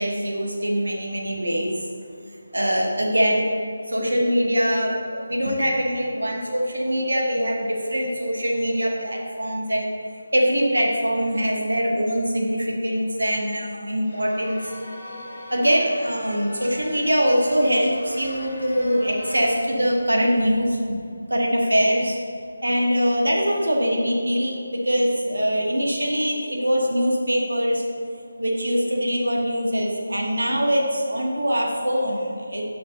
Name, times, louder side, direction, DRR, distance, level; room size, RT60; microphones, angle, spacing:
voice 1, 0.0-1.7 2.5-3.5 3.9-9.9 10.3-14.6 15.5-21.0 21.3-22.2 22.6-27.8 28.4-32.6, equal, 90° right, -1 dB, 1.4 m, -23 dB
sound 1, 14.0-19.6, left 1 dB, 45° left, 1.4 m, -40 dB
6.5 x 5.5 x 3.7 m, 2.4 s
figure-of-eight pair, 165°, 0 cm